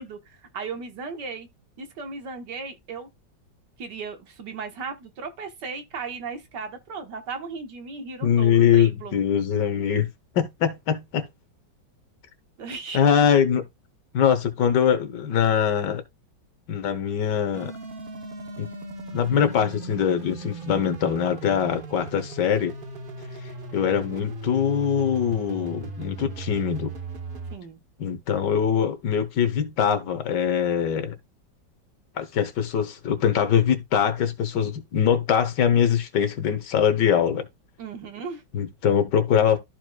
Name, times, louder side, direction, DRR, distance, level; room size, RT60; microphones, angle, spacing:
voice 1, 0.0-1.5 1.8-3.1 3.8-9.2 12.6-13.1 23.9-24.3 27.5-27.8 37.8-38.4, right 5 dB, 75° right, 1.9 m, -36 dB
voice 2, 8.2-10.1 10.3-11.3 12.9-13.6 14.1-16.0 16.7-17.7 18.6-18.7 19.1-22.7 23.7-26.9 28.0-31.1 32.2-37.5 38.5-39.6, left 8 dB, 75° left, 1.7 m, -22 dB
sound 1, 17.5-27.6, right 3 dB, 40° right, 0.9 m, -38 dB
13.5 x 4.6 x 2.3 m
omnidirectional pair, 1.9 m